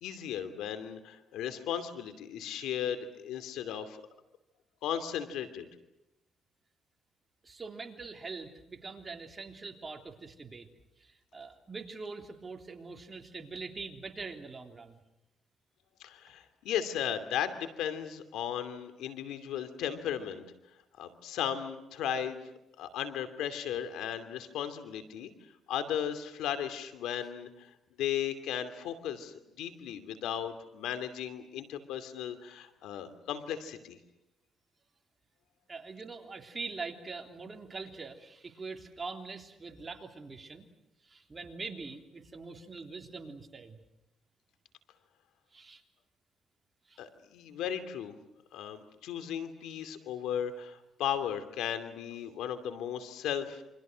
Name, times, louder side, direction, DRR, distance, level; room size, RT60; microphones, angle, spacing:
voice 1, 0.0-4.0 4.8-5.7 16.0-20.4 21.0-22.5 22.8-25.3 25.7-27.7 28.0-34.0 47.0-48.1 48.5-53.6, left 9 dB, 90° left, 10 dB, 2.6 m, -36 dB
voice 2, 7.4-10.7 11.0-15.0 35.7-40.7 41.0-43.8 45.5-45.8 46.9-47.0, right 4 dB, 30° right, 4 dB, 3.3 m, -43 dB
28.5 x 25.0 x 6.4 m, 0.92 s
cardioid pair, 90°, 0 cm